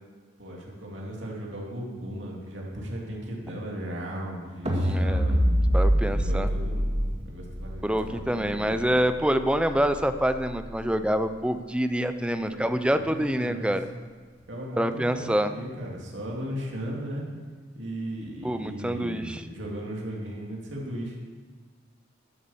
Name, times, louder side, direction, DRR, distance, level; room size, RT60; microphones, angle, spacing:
voice 1, 0.4-5.5 6.1-8.9 12.4-13.8 14.5-17.2 17.7-21.2, equal, 60° right, -2 dB, 2.8 m, -37 dB
sound 1, 4.7-11.0, equal, 30° right, 1.9 m, -27 dB
voice 2, 4.8-5.3 5.7-6.5 7.8-13.9 14.8-15.5 18.4-19.4, equal, 5° right, 10 dB, 0.5 m, -26 dB
11.5 x 8.4 x 7.2 m, 1.5 s
head